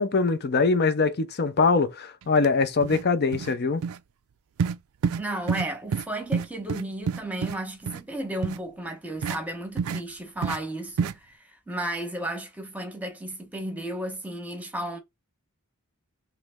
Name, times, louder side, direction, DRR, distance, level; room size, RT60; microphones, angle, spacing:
voice 1, 0.0-3.8, left 4 dB, 45° left, 0.6 m, -23 dB
sound 1, 2.4-2.5 2.8-3.0 3.3-3.5 3.8-4.0 4.6-4.8 5.0-5.2 5.5-5.7 5.9-6.0 6.3-7.5 7.9-8.0 8.4-8.6 9.2-9.4 9.8-10.0 10.4-10.6 11.0-11.1, right 6 dB, 65° right, 0.4 m, -27 dB
voice 2, 5.2-15.0, right 1 dB, 5° right, 1.0 m, -34 dB
3.3 x 3.1 x 3.4 m
head